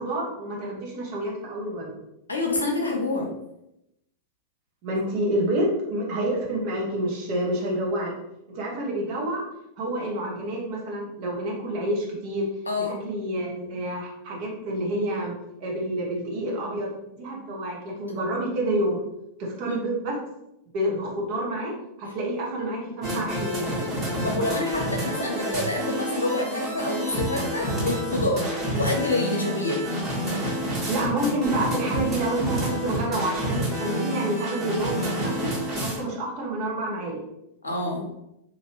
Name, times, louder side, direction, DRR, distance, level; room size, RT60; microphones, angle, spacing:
voice 1, 0.0-2.0 4.8-8.1 8.5-9.4 9.8-12.5 13.0-15.3 15.6-16.9 17.2-19.0 19.4-20.2 20.7-21.7 22.0-23.8 30.9-35.5 35.8-37.2, right 1 dB, 45° right, -3 dB, 1.1 m, -28 dB
voice 2, 2.3-3.3 12.7-13.0 19.7-19.8 24.2-30.0 37.6-38.1, left 2 dB, 75° left, 1 dB, 0.7 m, -27 dB
sound 1, 23.0-36.0, equal, 25° right, 1.4 m, -29 dB
3.2 x 2.5 x 3.0 m, 0.84 s
figure-of-eight pair, 90°, 0 cm